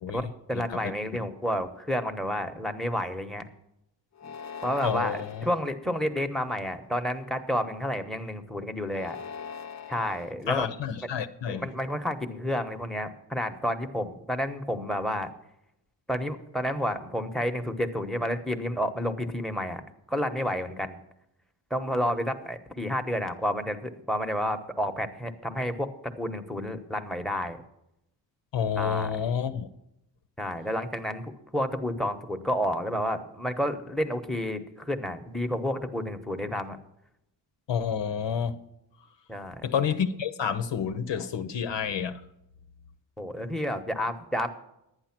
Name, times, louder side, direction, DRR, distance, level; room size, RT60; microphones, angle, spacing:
voice 1, 0.1-3.4 4.6-9.2 9.9-10.7 11.5-15.3 16.1-19.8 20.1-21.0 21.7-25.9 26.2-27.6 28.8-29.2 30.4-31.3 31.5-36.8 39.3-39.6 43.2-44.5, equal, ahead, 1.0 m, -30 dB
sound 1, 4.1-5.6 6.3-6.9 8.8-10.3, left 7 dB, 40° left, 0.7 m, -41 dB
voice 2, 4.8-5.5 10.5-11.7 28.5-29.7 37.7-38.6 39.6-42.2, left 7 dB, 75° left, 0.8 m, -29 dB
11.5 x 9.7 x 5.9 m
wide cardioid pair, 100°, 44 cm